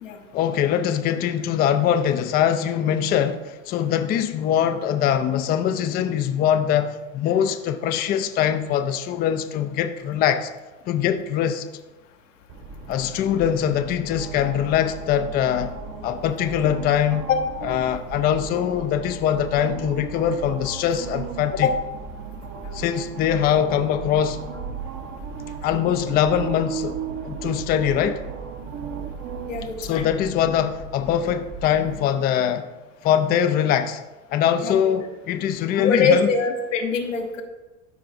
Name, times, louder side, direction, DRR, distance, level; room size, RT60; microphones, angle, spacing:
voice 1, 0.3-10.5 10.9-11.7 12.9-15.7 16.0-17.3 17.6-21.7 22.7-24.4 25.6-27.0 27.2-28.2 29.8-32.7 33.0-34.0 34.3-36.3, left 9 dB, 25° left, 0.4 m, -22 dB
sound 1, 12.5-32.0, right 5 dB, 40° right, 0.8 m, -36 dB
voice 2, 29.5-30.1 34.6-34.9 35.7-37.4, left 5 dB, 85° left, 1.2 m, -23 dB
12.5 x 4.7 x 2.6 m
hypercardioid pair, 95°, 37 cm